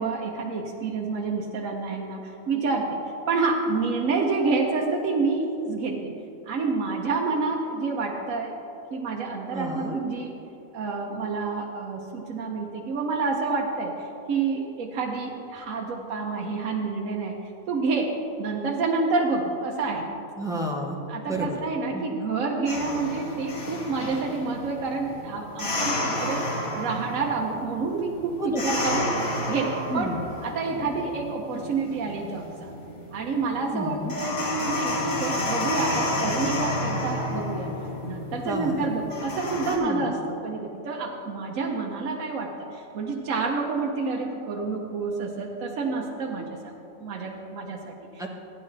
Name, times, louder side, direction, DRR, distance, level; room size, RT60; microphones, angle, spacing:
voice 1, 0.0-6.1 6.5-8.6 8.9-10.4 10.7-17.4 17.7-20.1 21.1-29.1 29.5-30.1 30.4-32.7 33.1-37.7 38.0-48.2, right 4 dB, 70° right, 0 dB, 1.2 m, -28 dB
voice 2, 9.5-10.0 20.4-21.0 21.3-21.6 21.9-22.1 28.4-28.6 29.9-30.3 30.7-30.9 33.7-34.1 38.4-38.9 39.7-40.1 46.4-46.5 48.2-48.3, equal, 5° right, -2 dB, 1.0 m, -31 dB
sound 1, 22.7-39.8, left 1 dB, 50° left, 1.7 m, -31 dB
14.5 x 9.8 x 3.3 m, 2.9 s
omnidirectional pair, 1.5 m